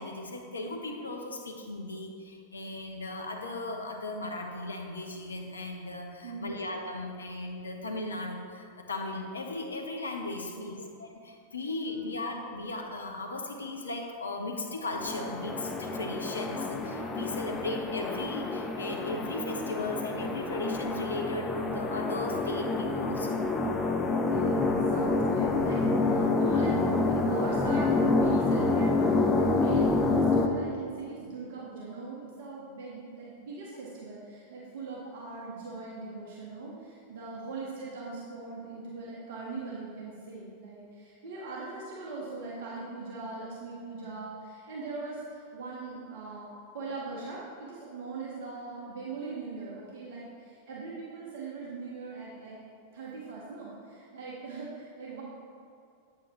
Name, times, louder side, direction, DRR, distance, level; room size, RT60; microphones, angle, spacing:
voice 1, 0.0-23.5, left 2 dB, 75° left, 3 dB, 0.9 m, -37 dB
voice 2, 6.2-6.6 10.5-10.8 24.3-52.6 52.9-55.2, right 3 dB, 55° right, -5 dB, 1.5 m, -40 dB
sound 1, 14.9-30.5, left 3 dB, 15° left, 0.6 m, -28 dB
8.4 x 8.3 x 3.2 m, 2.4 s
figure-of-eight pair, 90°, 0 cm